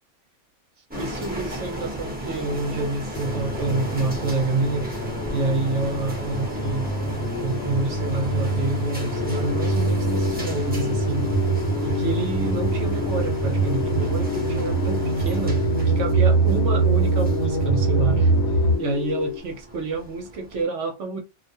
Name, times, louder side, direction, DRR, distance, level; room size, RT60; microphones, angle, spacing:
sound 1, 0.9-20.6, right 1 dB, 10° right, 0.4 m, -36 dB
voice 1, 1.0-4.9 5.3-6.9 7.4-11.3 11.8-15.6 15.9-18.3 18.8-21.2, right 3 dB, 65° right, 0.9 m, -28 dB
sound 2, 3.1-18.8, right 3 dB, 60° left, 0.9 m, -24 dB
sound 3, 9.2-19.4, left 9 dB, 85° left, 1.2 m, -30 dB
2.4 x 2.2 x 2.6 m
omnidirectional pair, 1.5 m